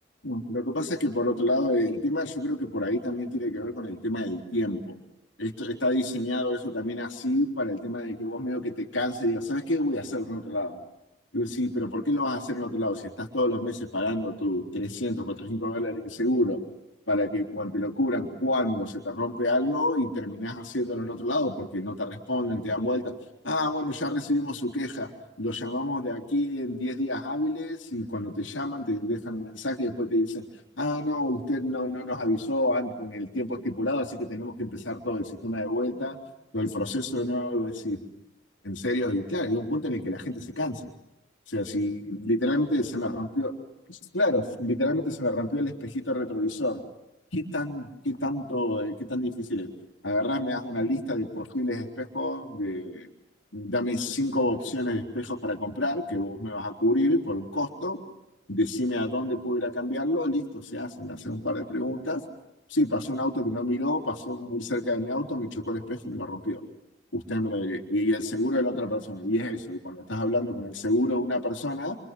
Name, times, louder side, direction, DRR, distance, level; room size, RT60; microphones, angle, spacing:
voice 1, 0.2-5.0 5.4-10.8 11.3-16.6 17.1-23.1 23.4-25.1 25.4-30.5 30.8-36.2 36.5-38.0 38.6-40.9 41.5-43.5 43.9-46.8 47.3-49.7 50.0-53.1 53.5-58.0 58.5-62.2 62.7-66.6 67.1-72.0, left 1 dB, 75° left, 4 dB, 3.7 m, -28 dB
27.5 x 26.0 x 7.7 m, 0.87 s
head